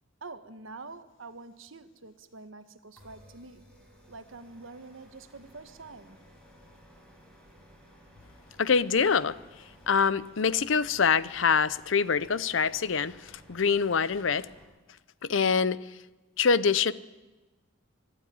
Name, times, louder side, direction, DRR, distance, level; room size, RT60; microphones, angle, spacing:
voice 1, 0.2-3.6 4.1-6.2, right 3 dB, 75° right, 1.3 m, -46 dB
sound 1, 3.0-14.6, equal, 5° left, 5.1 m, -56 dB
voice 2, 8.6-9.4 9.9-14.5 15.2-15.9 16.4-16.9, left 5 dB, 70° left, 0.7 m, -25 dB
24.0 x 12.0 x 9.6 m
head